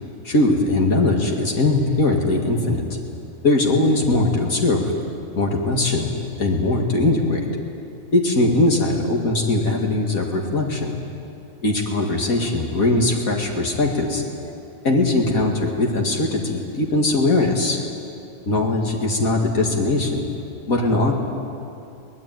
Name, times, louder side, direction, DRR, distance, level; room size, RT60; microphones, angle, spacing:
voice 1, 0.2-2.8 3.4-4.8 5.4-6.1 6.4-7.4 8.1-10.9 11.6-14.2 14.8-17.8 18.5-20.3 20.7-21.1, left 2 dB, 70° left, 1 dB, 2.6 m, -20 dB
23.5 x 19.0 x 9.2 m, 2.6 s
omnidirectional pair, 1.5 m